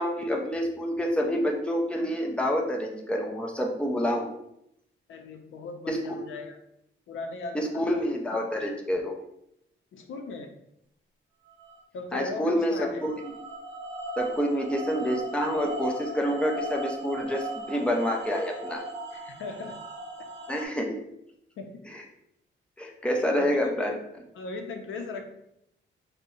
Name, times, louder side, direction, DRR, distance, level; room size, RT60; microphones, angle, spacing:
voice 1, 0.0-4.3 5.9-6.0 7.5-9.1 12.1-13.1 14.2-18.8 20.5-20.9 22.8-23.9, equal, 5° left, 0 dB, 0.4 m, -27 dB
voice 2, 5.1-6.6 7.1-8.0 8.3-8.5 9.9-10.5 11.9-13.0 19.1-19.8 21.6-21.8 23.4-24.0 24.3-25.2, left 3 dB, 80° left, 5 dB, 0.5 m, -38 dB
sound 1, 11.5-11.8 12.6-20.7, right 1 dB, 65° right, 0.5 m, -37 dB
2.7 x 2.0 x 3.8 m, 0.79 s
wide cardioid pair, 160°, 20 cm